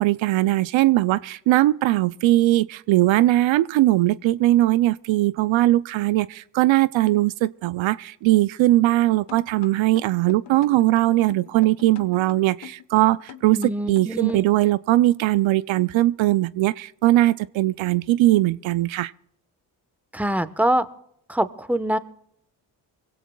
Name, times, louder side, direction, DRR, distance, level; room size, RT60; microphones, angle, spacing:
voice 1, 0.0-19.1, right 16 dB, 70° right, 0.5 m, -20 dB
sound 1, 9.3-14.6, left 11 dB, 55° left, 1.1 m, -43 dB
voice 2, 13.5-14.4 20.1-20.8 21.3-22.0, right 1 dB, 5° right, 1.1 m, -24 dB
23.5 x 17.0 x 2.3 m
supercardioid pair, 45°, 48 cm